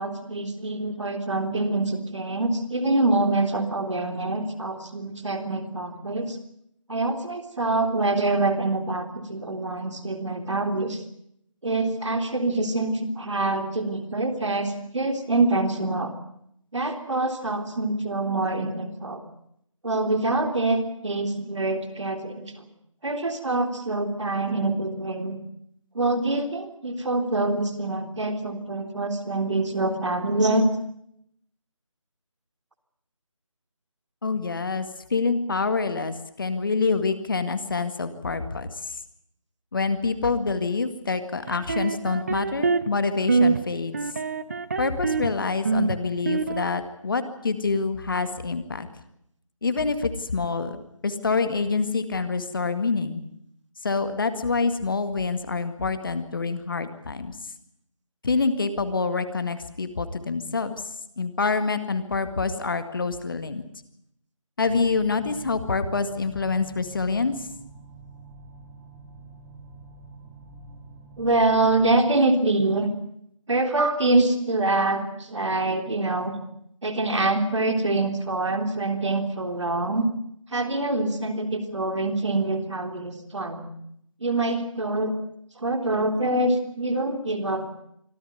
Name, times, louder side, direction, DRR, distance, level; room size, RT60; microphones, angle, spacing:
voice 1, 0.0-6.4 6.9-11.0 11.6-16.1 16.7-19.2 19.8-22.5 23.0-25.4 25.9-30.7 71.2-72.9 73.5-76.3 76.8-80.1 80.5-83.7 84.2-85.1 85.6-87.7, right 2 dB, 60° right, 6 dB, 3.6 m, -25 dB
voice 2, 34.2-39.0 39.7-43.9 44.8-48.9 49.6-53.2 53.8-57.4 58.2-60.7 61.2-63.6 64.6-67.5, left 4 dB, 40° left, 10 dB, 2.0 m, -26 dB
sound 1, 41.5-43.0 43.3-43.6 43.9-45.3 45.6-46.6, right 4 dB, 30° right, 0.9 m, -25 dB
sound 2, 64.6-72.0, right 3 dB, 10° right, 1.6 m, -47 dB
25.0 x 14.5 x 9.5 m, 0.72 s
figure-of-eight pair, 165°, 17 cm